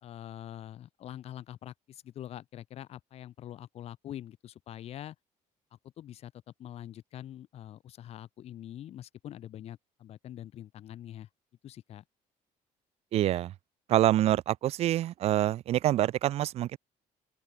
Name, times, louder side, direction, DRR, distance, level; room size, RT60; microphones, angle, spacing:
voice 1, 0.0-5.1 6.0-6.3 6.6-11.3 11.6-12.0, left 11 dB, 45° left, 1.7 m, -44 dB
voice 2, 13.1-13.5 13.9-16.8, right 13 dB, 45° right, 0.6 m, -26 dB
open air
cardioid pair, 175°, 14 cm